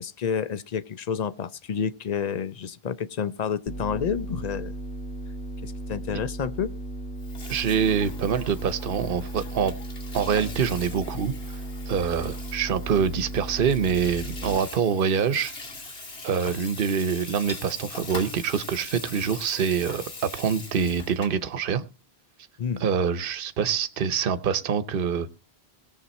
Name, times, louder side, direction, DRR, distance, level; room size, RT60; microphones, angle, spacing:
voice 1, 0.0-4.7 5.6-6.7 22.6-22.8, left 7 dB, 45° left, 0.7 m, -29 dB
sound 1, 3.7-14.6, right 1 dB, 10° left, 1.2 m, -36 dB
Water tap faucet / Sink (filling or washing), 7.1-21.4, left 3 dB, 70° left, 2.6 m, -42 dB
voice 2, 7.5-9.7 10.1-11.6 11.9-15.5 16.2-20.0 20.3-21.8 22.8-25.3, right 7 dB, 60° right, 1.0 m, -25 dB
17.5 x 7.5 x 4.2 m
omnidirectional pair, 1.0 m